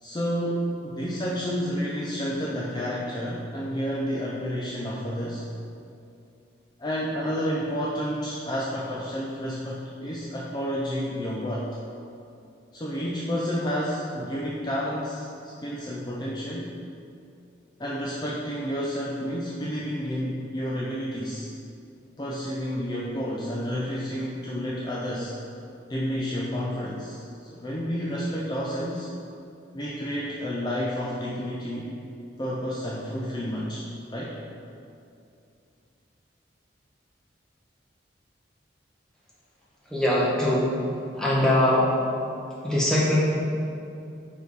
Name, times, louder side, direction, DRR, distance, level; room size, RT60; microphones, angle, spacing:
voice 1, 0.0-5.4 6.8-11.7 12.7-16.7 17.8-21.5 22.2-25.3 25.9-29.1 29.7-31.9 32.4-34.4, equal, 20° left, -5 dB, 0.4 m, -30 dB
voice 2, 39.9-40.7 41.1-41.9 42.6-43.2, left 1 dB, 5° left, -7 dB, 1.0 m, -22 dB
5.2 x 4.5 x 4.7 m, 2.6 s
head